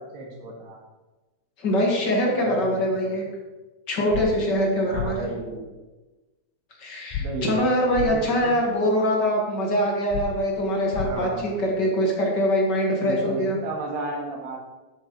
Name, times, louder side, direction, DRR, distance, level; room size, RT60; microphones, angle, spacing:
voice 1, 0.1-0.8 2.3-3.1 4.9-5.7 7.2-8.5 11.0-11.7 13.0-14.6, right 2 dB, 85° right, -2 dB, 4.0 m, -33 dB
voice 2, 1.6-3.2 3.9-5.2 6.8-13.6, equal, 45° left, -2 dB, 1.5 m, -23 dB
sound 1, 4.1-4.3 4.9-5.1 7.1-7.2 7.9-8.1 10.1-10.2 10.9-11.1, left 10 dB, 80° left, 2.6 m, -29 dB
12.5 x 8.1 x 3.2 m, 1.2 s
omnidirectional pair, 4.6 m